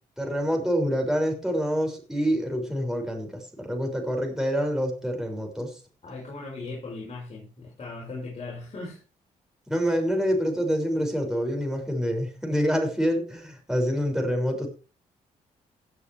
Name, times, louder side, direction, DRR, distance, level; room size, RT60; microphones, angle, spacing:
voice 1, 0.2-5.8 9.7-14.7, equal, 5° right, 3 dB, 6.3 m, -26 dB
voice 2, 6.0-9.0, left 3 dB, 45° left, -3 dB, 6.2 m, -38 dB
17.5 x 8.6 x 3.4 m, 0.33 s
cardioid pair, 70°, 15 cm